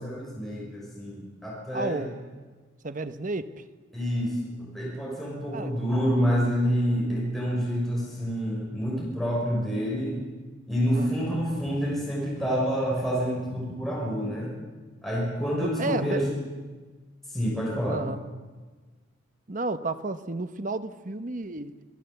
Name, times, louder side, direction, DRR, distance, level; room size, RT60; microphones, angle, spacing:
voice 1, 0.0-2.1 3.9-10.2 10.7-14.5 15.0-16.3 17.3-18.0, equal, ahead, -5 dB, 5.8 m, -28 dB
voice 2, 1.7-2.2 2.8-3.5 5.5-5.7 10.9-11.3 15.6-16.3 17.9-18.2 19.5-21.7, right 2 dB, 40° right, 10 dB, 1.0 m, -32 dB
25.5 x 19.0 x 7.9 m, 1.3 s
head